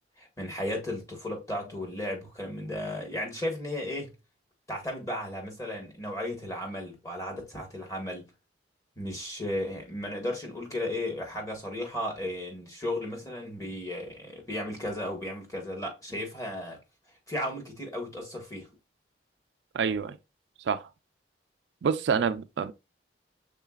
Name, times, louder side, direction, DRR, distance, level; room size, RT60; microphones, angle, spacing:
voice 1, 0.2-4.1 4.7-8.3 9.0-16.8 17.3-18.7, left 1 dB, 20° left, 1.3 m, -35 dB
voice 2, 19.7-20.2 20.6-20.9 21.8-22.7, right 6 dB, 75° right, 0.4 m, -27 dB
5.6 x 3.7 x 2.3 m
head